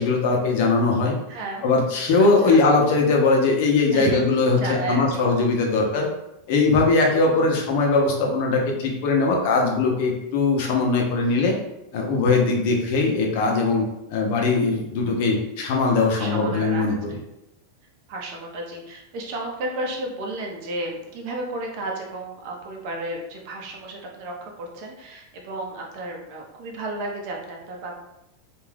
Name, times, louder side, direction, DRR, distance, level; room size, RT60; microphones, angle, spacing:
voice 1, 0.0-1.2 1.6-6.1 6.5-11.5 11.9-17.1, left 3 dB, 55° left, 1 dB, 0.7 m, -20 dB
voice 2, 1.3-1.7 2.2-2.6 3.9-5.3 5.6-6.0 7.4-7.7 10.6-10.9 11.2-11.4 16.2-17.2 18.1-28.0, right 2 dB, 55° right, 0 dB, 0.7 m, -33 dB
2.5 x 2.3 x 3.3 m, 0.91 s
supercardioid pair, 140°, 0 cm